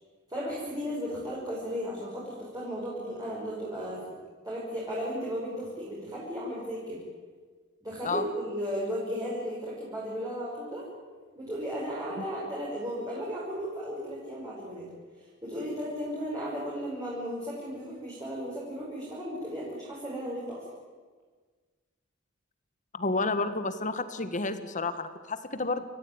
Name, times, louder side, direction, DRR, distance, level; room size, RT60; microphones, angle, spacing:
voice 1, 0.3-4.1 4.4-7.0 7.8-10.8 11.3-14.9 15.4-20.6, equal, 20° right, -6 dB, 6.3 m, -35 dB
voice 2, 22.9-25.8, left 3 dB, 35° left, 11 dB, 1.6 m, -30 dB
29.5 x 14.5 x 9.6 m, 1.4 s
head